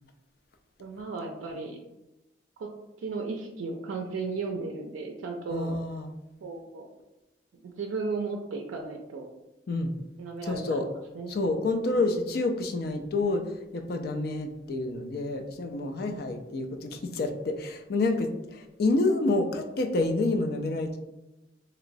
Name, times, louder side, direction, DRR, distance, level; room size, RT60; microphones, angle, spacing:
voice 1, 0.8-1.8 2.6-2.7 3.0-5.8 6.4-6.9 7.6-9.3 10.2-11.4, right 4 dB, 85° right, 2 dB, 0.4 m, -35 dB
voice 2, 5.5-6.1 9.7-9.9 10.4-10.9 11.3-21.0, left 2 dB, 50° left, 5 dB, 0.3 m, -28 dB
3.0 x 2.9 x 2.6 m, 0.96 s
head